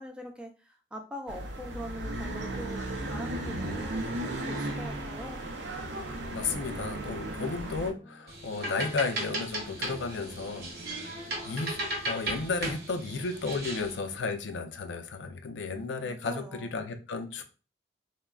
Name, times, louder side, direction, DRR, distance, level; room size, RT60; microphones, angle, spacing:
voice 1, 0.0-5.4 16.0-16.8, equal, 5° right, 2 dB, 0.4 m, -43 dB
sound 1, 1.3-7.9, right 1 dB, 85° right, 0.5 m, -35 dB
sound 2, 4.8-12.9 13.5-13.6 13.9-14.1, left 1 dB, 20° left, 0.7 m, -53 dB
voice 2, 6.3-17.4, left 4 dB, 90° left, 7 dB, 0.4 m, -34 dB
sound 3, 8.3-14.0, right 1 dB, 60° right, 0.8 m, -36 dB
3.5 x 2.1 x 2.2 m, 0.33 s
head